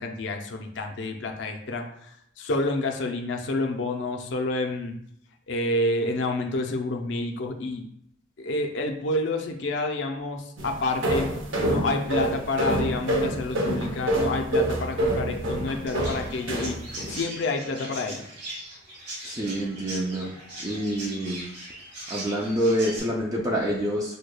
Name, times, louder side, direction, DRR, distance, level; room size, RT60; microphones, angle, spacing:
voice 1, 0.0-2.1 2.4-4.9 5.5-7.8 8.4-11.3 11.7-16.8 17.1-18.2, left 2 dB, 60° left, 3 dB, 0.5 m, -29 dB
sound 1, 10.6-17.2, right 1 dB, 70° right, 0.7 m, -27 dB
Chirp tweet, 15.9-23.0, right 1 dB, 55° right, 1.4 m, -39 dB
voice 2, 19.2-20.4 20.6-21.4 22.1-24.2, equal, 15° right, -3 dB, 0.4 m, -27 dB
6.3 x 2.2 x 2.2 m, 0.73 s
head